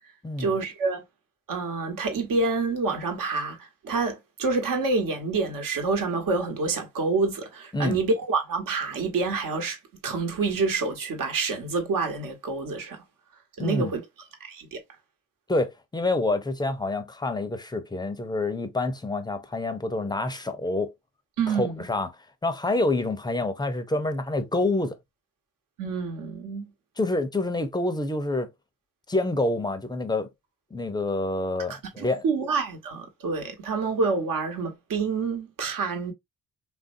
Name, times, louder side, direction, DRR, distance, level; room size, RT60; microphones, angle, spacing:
voice 1, 0.4-1.0 1.5-13.0 13.6-14.0 14.4-14.8 21.4-21.8 25.8-26.7 31.7-36.1, right 4 dB, 60° right, 1.2 m, -27 dB
voice 2, 13.6-13.9 15.5-20.9 21.5-22.1 22.4-25.0 27.0-28.5 29.1-30.3 30.7-32.2, left 2 dB, 10° left, 0.6 m, -27 dB
3.2 x 2.6 x 2.5 m
supercardioid pair, 65°, 37 cm